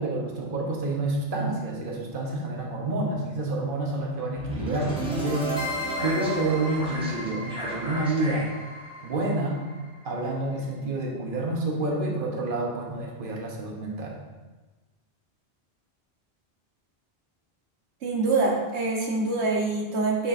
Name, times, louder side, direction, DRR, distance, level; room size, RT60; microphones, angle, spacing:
voice 1, 0.0-5.7 6.0-8.5 9.0-9.6 10.0-14.2, right 2 dB, 55° right, -1 dB, 1.2 m, -28 dB
sound 1, 4.4-10.4, equal, 5° right, 1.2 m, -33 dB
voice 2, 18.0-20.3, right 3 dB, 85° right, -2 dB, 1.5 m, -25 dB
9.3 x 4.4 x 2.6 m, 1.2 s
omnidirectional pair, 1.1 m